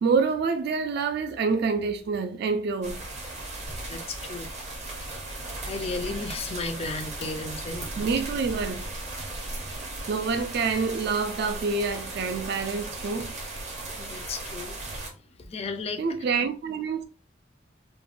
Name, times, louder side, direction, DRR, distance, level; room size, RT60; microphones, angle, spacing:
voice 1, 0.0-3.0 8.0-8.9 10.1-13.3 16.0-17.0, right 4 dB, 55° right, 0.3 m, -27 dB
sound 1, 2.8-15.1, right 2 dB, 35° right, 0.7 m, -37 dB
voice 2, 3.9-4.5 5.0-5.4 5.6-8.0 14.0-14.8 15.4-16.0, left 3 dB, 30° left, 0.3 m, -34 dB
3.2 x 2.1 x 2.4 m
head